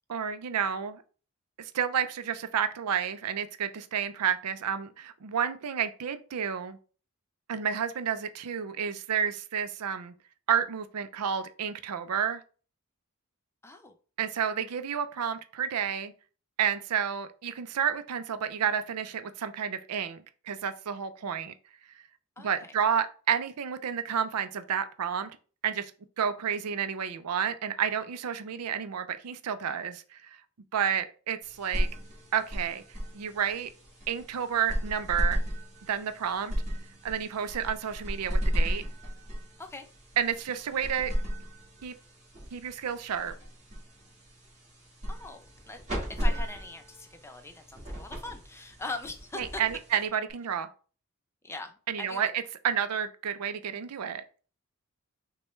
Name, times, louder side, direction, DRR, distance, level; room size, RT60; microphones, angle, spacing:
voice 1, 0.1-1.0 1.6-6.8 7.5-10.1 10.5-12.4 14.2-16.1 16.6-21.5 22.4-25.3 25.6-25.9 26.2-30.4 30.7-31.9 32.3-32.8 33.1-33.7 34.1-35.4 35.9-36.5 37.0-38.8 40.2-41.1 41.8-41.9 42.5-43.3 49.3-50.7 51.9-52.3 52.6-54.2, right 8 dB, 85° right, 0.5 m, -30 dB
voice 2, 13.6-13.9 22.4-22.7 39.6-39.9 45.1-45.8 46.1-49.6 51.4-51.7 52.0-52.3, left 2 dB, 10° left, 0.5 m, -41 dB
sound 1, 31.4-50.3, equal, 30° right, 1.7 m, -35 dB
6.2 x 2.2 x 3.0 m
head